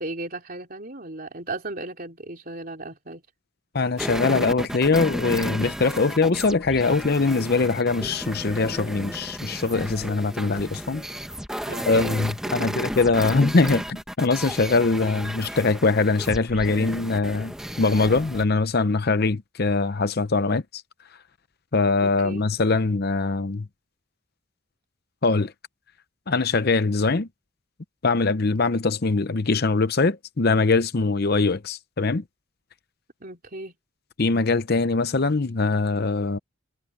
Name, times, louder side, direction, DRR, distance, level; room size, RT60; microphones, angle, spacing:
voice 1, 0.0-3.2 11.6-13.0 22.0-22.4 33.2-33.8, right 2 dB, 45° right, 3.5 m, -36 dB
voice 2, 3.7-11.0 11.9-20.8 21.7-23.7 25.2-25.5 26.3-27.3 28.0-32.2 34.2-36.4, left 3 dB, 45° left, 0.7 m, -22 dB
sound 1, 4.0-18.4, equal, 5° right, 1.2 m, -33 dB
head